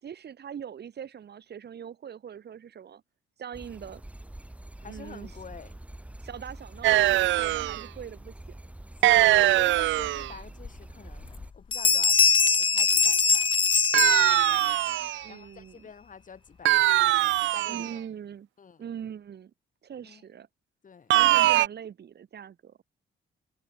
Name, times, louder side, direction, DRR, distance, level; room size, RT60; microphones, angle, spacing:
voice 1, 0.0-3.0 3.4-4.0 4.8-5.3 6.2-8.6 15.2-15.9 17.7-18.5 18.8-19.5 19.8-20.5 21.1-22.8, right 8 dB, 55° right, 4.4 m, -41 dB
sound 1, 3.5-11.5, right 1 dB, 5° right, 1.1 m, -45 dB
voice 2, 4.8-5.7 9.0-13.5 15.2-17.0 17.5-18.1 18.6-18.8 20.0-20.2 20.8-21.1, left 6 dB, 40° left, 2.8 m, -47 dB
sound 2, 6.8-7.8 9.0-10.3 13.9-15.3 16.6-17.9 21.1-21.7, right 15 dB, 70° right, 0.4 m, -22 dB
Bell, 10.6-10.7 11.2-11.5 11.7-14.9, left 6 dB, 25° left, 0.5 m, -23 dB
cardioid pair, 90°, 20 cm